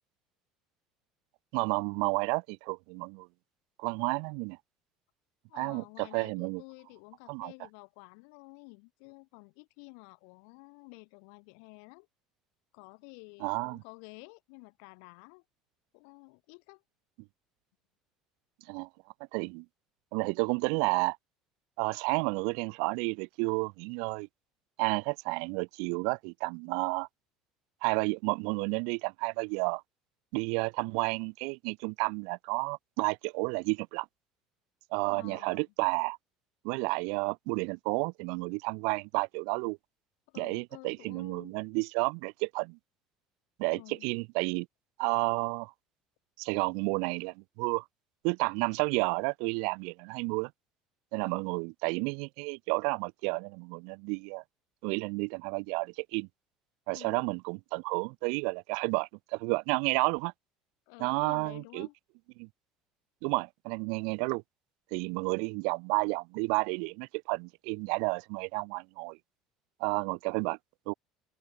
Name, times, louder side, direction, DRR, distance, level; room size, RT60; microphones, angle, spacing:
voice 1, 1.5-3.3 3.8-4.6 5.5-6.6 7.3-7.5 13.4-13.8 18.7-18.9 19.3-19.6 20.1-21.2 21.8-24.3 24.8-27.1 27.8-29.8 30.3-34.1 34.9-36.2 36.6-39.8 40.4-42.8 43.6-44.7 45.0-45.7 46.4-47.8 48.2-50.5 51.1-54.4 54.8-56.3 56.9-60.3 61.0-61.9 62.4-62.5 63.2-64.4 64.9-69.2 69.8-70.6 70.9-71.0, right 38 dB, 75° right, 2.2 m, -31 dB
voice 2, 5.5-12.1 12.7-15.4 15.9-16.8 35.1-35.6 40.3-41.5 43.7-44.1 51.2-51.4 56.9-57.3 60.9-61.9, left 40 dB or more, 80° left, 3.1 m, -51 dB
open air
cardioid pair, 170°, 0 cm